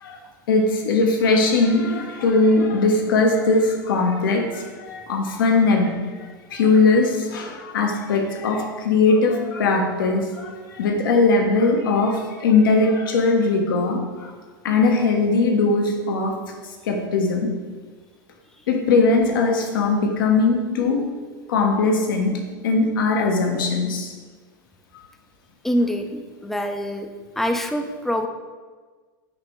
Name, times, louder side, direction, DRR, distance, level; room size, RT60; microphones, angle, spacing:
voice 1, 0.5-14.3 14.6-16.4 16.8-17.5 18.7-21.1 21.5-24.1, left 3 dB, 75° left, 3 dB, 0.7 m, -20 dB
voice 2, 25.6-27.1 27.4-28.3, equal, ahead, 5 dB, 0.4 m, -25 dB
5.2 x 2.9 x 3.0 m, 1.4 s
hypercardioid pair, 95°, 11 cm